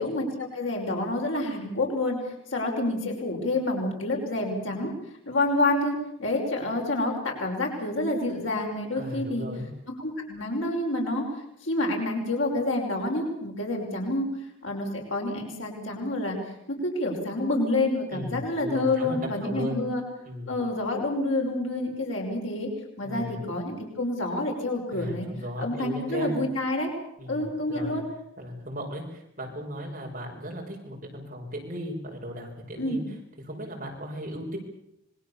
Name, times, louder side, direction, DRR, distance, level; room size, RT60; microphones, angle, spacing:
voice 1, 0.0-2.2 2.5-4.9 5.3-5.9 6.2-9.5 10.0-11.2 11.6-14.3 14.6-16.4 16.7-20.0 20.5-22.7 23.0-25.3 25.6-26.9 27.3-28.0 32.8-33.0, left 2 dB, 85° left, 1 dB, 5.5 m, -28 dB
voice 2, 8.9-9.7 18.1-19.9 20.2-20.6 23.0-23.5 24.9-26.4 27.2-28.0 28.4-33.0 33.4-34.6, equal, 40° right, 0 dB, 5.8 m, -36 dB
26.0 x 22.0 x 7.1 m, 0.76 s
head